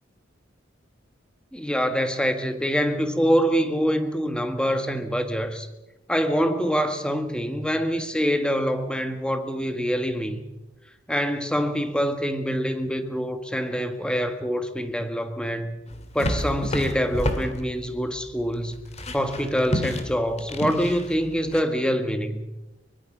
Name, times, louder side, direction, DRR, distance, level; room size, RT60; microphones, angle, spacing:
voice 1, 1.5-5.7 6.1-10.4 11.1-15.8 16.1-18.8 19.1-22.4, equal, 5° left, 1.6 m, -25 dB
sound 1, 15.9-21.6, left 1 dB, 35° left, 2.4 m, -31 dB
23.5 x 22.5 x 6.2 m
head